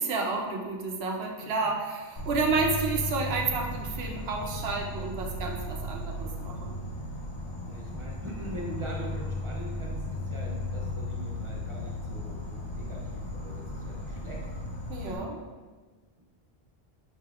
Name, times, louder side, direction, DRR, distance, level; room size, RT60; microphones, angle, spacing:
voice 1, 0.0-6.8 14.9-15.4, right 4 dB, 80° right, 1 dB, 0.9 m, -30 dB
voice 2, 1.4-1.7 3.4-3.7 7.6-14.5 15.0-15.4, right 1 dB, 40° right, -3 dB, 0.5 m, -42 dB
Insect, 2.2-15.2, left 1 dB, 50° left, 0.3 m, -36 dB
5.1 x 3.2 x 2.4 m, 1.3 s
omnidirectional pair, 1.0 m